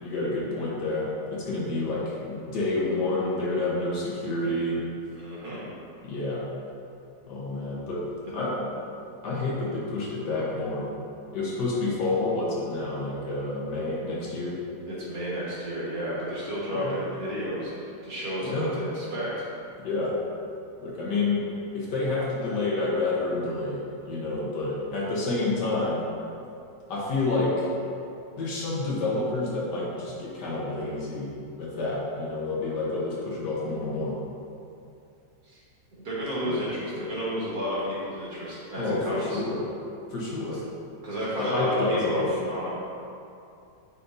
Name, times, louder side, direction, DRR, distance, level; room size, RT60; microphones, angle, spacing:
voice 1, 0.0-4.8 6.0-6.4 7.3-8.0 8.3-8.7 9.2-10.8 11.3-14.6 16.7-17.0 18.5-18.7 19.8-20.1 20.8-21.4 21.7-23.8 24.1-26.1 26.9-27.7 28.4-31.3 31.6-34.1 36.4-36.6 38.8-39.6 40.1-40.6 41.4-42.2, left 2 dB, 70° left, -5 dB, 1.8 m, -28 dB
voice 2, 5.1-5.6 14.9-19.5 35.5-35.6 35.9-39.4 40.5-40.6 41.0-42.7, equal, 60° right, -7 dB, 2.0 m, -32 dB
9.5 x 4.2 x 2.7 m, 2.6 s
omnidirectional pair, 1.9 m